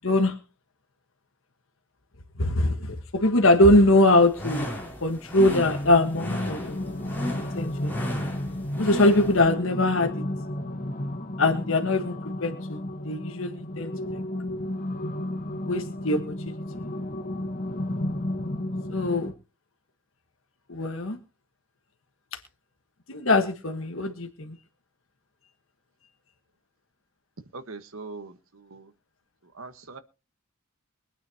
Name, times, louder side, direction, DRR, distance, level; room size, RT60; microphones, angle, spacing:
voice 1, 0.0-0.3 2.4-4.7 5.0-7.0 7.6-7.9 8.8-10.2 11.4-14.2 15.6-16.5 18.9-19.3 20.7-21.2 23.1-24.5, left 2 dB, 70° left, 5 dB, 1.4 m, -22 dB
sound 1, 4.1-9.5, left 1 dB, 10° left, 3.7 m, -35 dB
sound 2, 5.5-19.3, left 1 dB, 40° left, 1.2 m, -33 dB
voice 2, 27.5-28.9 29.4-30.0, right 3 dB, 80° right, 11 dB, 1.3 m, -42 dB
23.5 x 9.1 x 2.8 m, 0.32 s
head